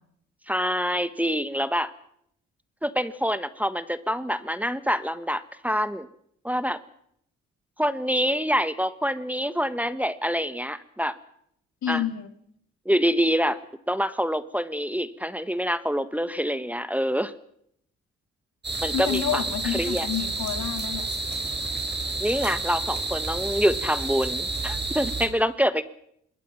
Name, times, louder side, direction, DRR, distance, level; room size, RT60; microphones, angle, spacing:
voice 1, 0.5-1.9 2.8-6.1 6.4-6.8 7.8-11.2 11.9-12.0 12.8-13.6 13.9-17.3 18.8-19.4 19.7-20.1 22.2-25.8, equal, 5° right, 12 dB, 1.4 m, -26 dB
voice 2, 11.8-12.3 18.9-21.1, left 9 dB, 70° left, 8 dB, 2.6 m, -29 dB
sound 1, 18.6-25.3, right 3 dB, 35° right, 5.9 m, -30 dB
26.0 x 21.5 x 5.9 m, 0.72 s
supercardioid pair, 55°, 30 cm